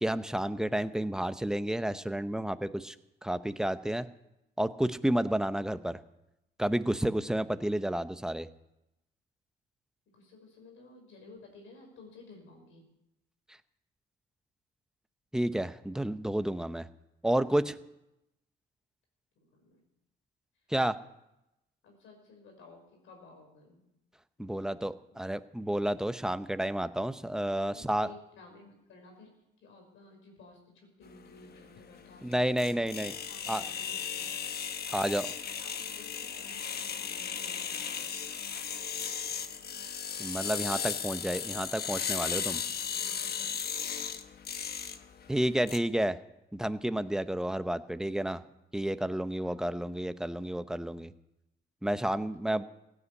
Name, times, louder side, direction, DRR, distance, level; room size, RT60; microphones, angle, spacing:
voice 1, 0.0-2.9 3.2-4.1 4.6-6.0 6.6-8.5 15.3-16.9 17.2-17.8 20.7-21.0 24.4-28.1 32.2-33.1 33.5-33.6 34.9-35.3 40.2-42.6 45.3-46.2 46.5-48.4 48.7-51.1 51.8-52.6, right 1 dB, 5° right, 12 dB, 0.7 m, -30 dB
voice 2, 10.1-12.8 19.6-19.8 21.8-23.9 24.4-24.8 25.1-25.2 27.7-29.3 29.6-32.4 32.7-34.3 35.1-38.1 42.8-44.0 49.4-49.5 52.0-52.7, left 3 dB, 80° left, 2 dB, 5.7 m, -55 dB
sound 1, 31.1-45.8, left 7 dB, 50° left, 1.1 m, -36 dB
16.5 x 9.9 x 8.5 m, 0.90 s
cardioid pair, 90°, 20 cm